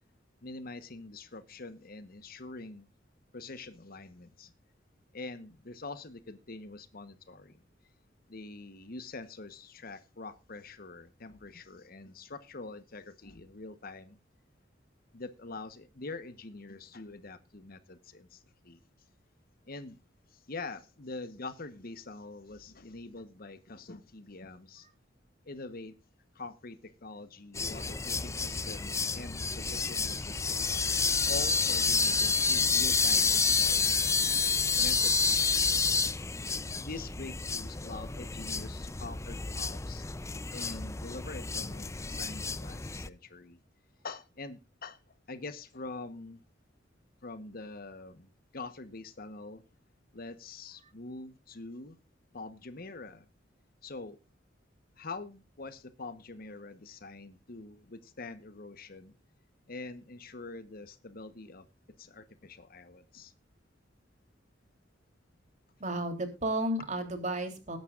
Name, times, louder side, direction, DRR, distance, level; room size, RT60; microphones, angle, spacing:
voice 1, 0.4-2.9 3.3-4.5 5.1-7.6 8.3-14.2 15.1-18.8 19.7-20.0 20.3-24.9 25.4-26.0 26.3-30.7 31.3-35.9 36.8-40.0 40.5-43.6 44.0-45.0 45.3-46.4 47.2-49.6 50.1-52.0 52.3-53.3 53.8-54.2 55.0-59.1 59.7-61.7 62.0-63.3, left 3 dB, 50° left, 1.1 m, -45 dB
sound 1, 27.5-43.1, left 4 dB, 15° left, 0.5 m, -29 dB
voice 2, 65.8-67.8, right 1 dB, 40° right, 3.3 m, -32 dB
20.5 x 10.5 x 2.5 m
head